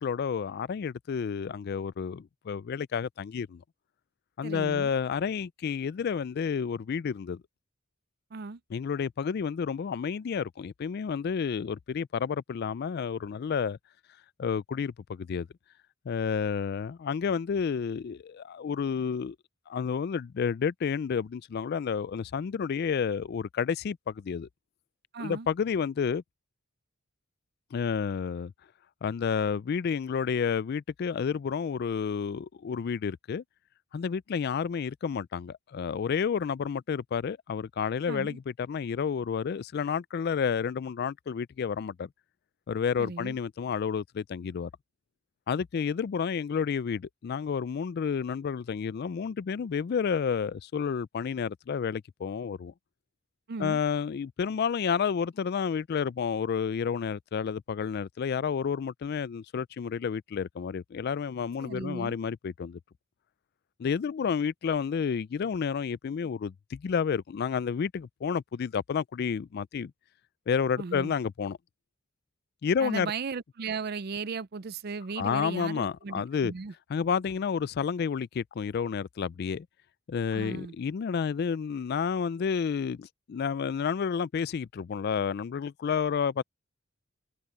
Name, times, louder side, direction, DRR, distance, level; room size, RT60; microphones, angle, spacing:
voice 1, 0.0-3.6 4.4-7.4 8.7-13.8 14.4-15.5 16.1-19.4 19.7-24.5 25.2-26.2 27.7-28.5 29.0-33.4 33.9-42.1 42.7-44.7 45.5-52.7 53.6-62.8 63.8-69.9 70.5-71.6 72.6-73.1 75.2-76.5 76.9-79.7 80.1-86.4, left 6 dB, 50° left, 0.3 m, -30 dB
voice 2, 4.4-4.9 8.3-8.6 25.1-25.5 38.1-38.4 43.0-43.4 53.5-53.8 61.6-62.1 70.8-71.1 72.8-76.7 80.3-80.7, right 4 dB, 50° right, 0.5 m, -36 dB
head